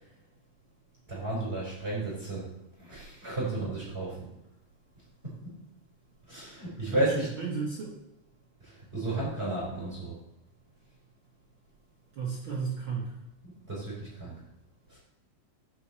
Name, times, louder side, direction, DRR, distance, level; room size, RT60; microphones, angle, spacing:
voice 1, 1.1-2.5 2.8-4.3 5.2-5.5 6.3-7.3 8.6-10.2 13.7-14.3 14.9-15.0, right 2 dB, 15° right, -7 dB, 3.5 m, -33 dB
voice 2, 3.3-3.7 6.8-7.9 12.1-13.2, right 5 dB, 65° right, -4 dB, 1.2 m, -35 dB
15.0 x 5.2 x 4.2 m, 0.93 s
omnidirectional pair, 4.6 m